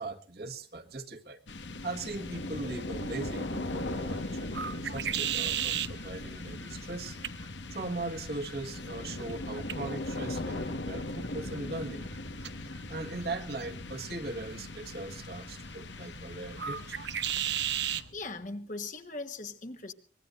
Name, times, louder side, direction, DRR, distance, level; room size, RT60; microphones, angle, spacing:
voice 1, 0.0-1.4 1.8-7.2 7.7-12.1 12.9-17.0, right 2 dB, 60° right, 1.7 m, -39 dB
sound 1, 1.5-18.4, left 2 dB, 90° left, 1.6 m, -39 dB
sound 2, 2.7-18.1, right 10 dB, 80° right, 1.0 m, -39 dB
voice 2, 18.1-19.9, left 3 dB, 45° left, 1.4 m, -39 dB
24.0 x 20.5 x 2.6 m
head